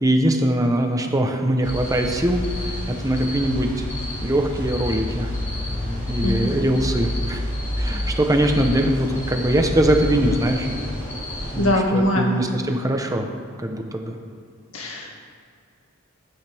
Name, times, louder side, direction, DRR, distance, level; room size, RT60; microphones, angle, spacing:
voice 1, 0.0-3.7 4.2-5.3 5.7-7.4 7.8-10.7 11.5-13.3 13.6-14.2, right 1 dB, 15° right, 3 dB, 0.9 m, -22 dB
sound 1, 1.6-11.7, left 1 dB, 35° left, 3.5 m, -29 dB
voice 2, 11.6-12.3 14.7-15.1, left 1 dB, 80° left, 0 dB, 2.0 m, -21 dB
16.0 x 11.5 x 3.5 m, 2.2 s
head